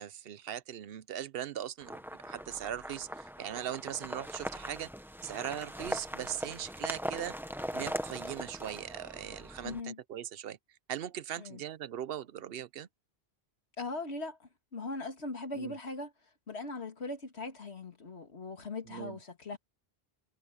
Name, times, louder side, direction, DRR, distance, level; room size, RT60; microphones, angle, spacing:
voice 1, 0.0-4.9 5.2-7.4 7.7-10.6 10.9-12.9 15.5-15.7 18.9-19.2, right 10 dB, 65° right, 0.8 m, -40 dB
sound 1, 1.8-9.8, equal, ahead, 0.8 m, -40 dB
voice 2, 9.6-10.0 11.4-11.6 13.8-16.1 16.5-19.6, left 3 dB, 85° left, 2.4 m, -40 dB
omnidirectional pair, 1.1 m